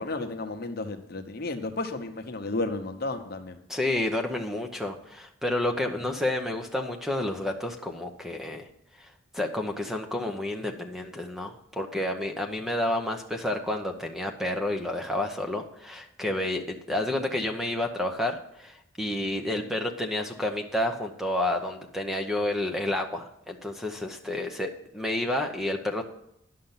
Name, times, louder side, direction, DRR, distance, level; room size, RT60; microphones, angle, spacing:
voice 1, 0.0-3.6, left 2 dB, 50° left, 6 dB, 0.9 m, -33 dB
voice 2, 3.7-8.7 9.0-9.1 9.3-26.0, left 1 dB, ahead, 4 dB, 0.7 m, -30 dB
10.5 x 6.6 x 5.7 m, 0.79 s
head